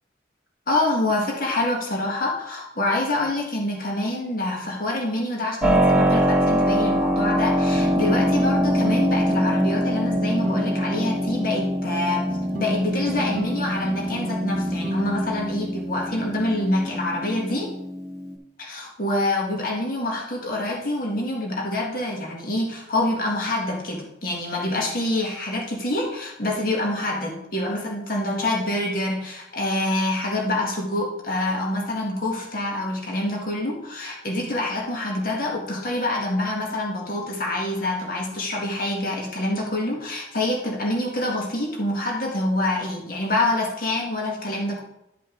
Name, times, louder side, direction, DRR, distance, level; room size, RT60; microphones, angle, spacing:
voice 1, 0.7-12.3 12.5-17.7 18.6-44.8, left 1 dB, 50° left, -1 dB, 1.7 m, -26 dB
Keyboard (musical), 5.6-18.3, equal, 5° right, 1.3 m, -24 dB
sound 1, 7.7-17.0, right 1 dB, 50° right, 0.6 m, -34 dB
12.0 x 5.3 x 3.9 m, 0.85 s
head